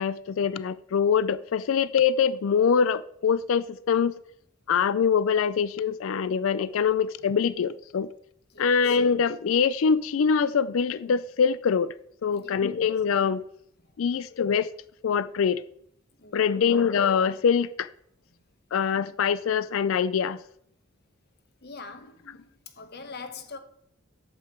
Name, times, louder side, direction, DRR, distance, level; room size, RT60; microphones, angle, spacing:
voice 1, 0.0-4.2 4.7-8.1 8.6-11.9 12.2-13.4 14.0-14.7 15.0-15.6 16.3-17.9 18.7-20.4, left 6 dB, 75° left, 0.4 m, -24 dB
voice 2, 8.5-9.0 12.3-12.5 16.2-16.6 21.6-23.6, left 4 dB, 50° left, 1.1 m, -43 dB
11.0 x 8.0 x 4.5 m
head